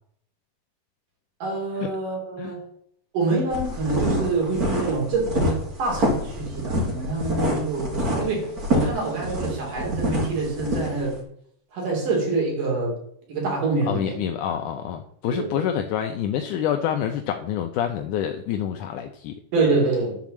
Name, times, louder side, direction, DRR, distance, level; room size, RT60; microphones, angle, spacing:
voice 1, 1.4-2.7 3.1-11.2 11.7-13.0 13.3-14.2 15.3-15.5 19.5-20.2, right 3 dB, 80° right, 4.7 m, -26 dB
sound 1, 3.5-11.1, equal, 30° right, 2.6 m, -26 dB
voice 2, 13.9-19.4, left 9 dB, 80° left, 2.2 m, -27 dB
11.0 x 4.8 x 7.2 m
omnidirectional pair, 3.7 m